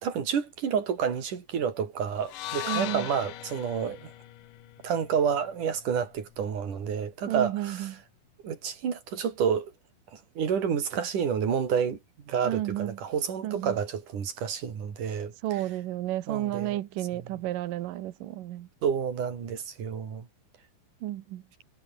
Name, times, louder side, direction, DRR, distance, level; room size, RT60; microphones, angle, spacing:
voice 1, 0.0-4.1 4.8-8.0 8.4-9.7 10.1-12.0 12.3-15.6 16.3-16.8 17.1-17.2 18.8-20.3, right 7 dB, 45° right, 4.3 m, -29 dB
sound 1, 2.2-6.4, left 14 dB, 90° left, 1.8 m, -39 dB
voice 2, 2.6-3.1 7.3-7.9 12.4-13.0 13.4-13.8 15.4-18.7 21.0-21.4, right 14 dB, 80° right, 1.9 m, -32 dB
omnidirectional pair, 5.6 m